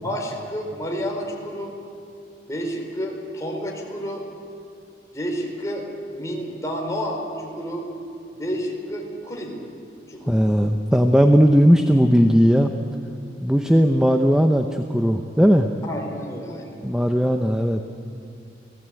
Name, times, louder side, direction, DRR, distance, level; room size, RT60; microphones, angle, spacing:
voice 1, 0.0-1.7 2.5-4.2 5.1-7.9 8.3-9.6 10.1-10.4 15.8-16.8, equal, 15° left, 0 dB, 4.5 m, -30 dB
voice 2, 10.3-12.7 13.4-15.7 16.8-17.8, equal, 5° right, 5 dB, 0.8 m, -17 dB
29.5 x 18.0 x 9.2 m, 2.5 s
head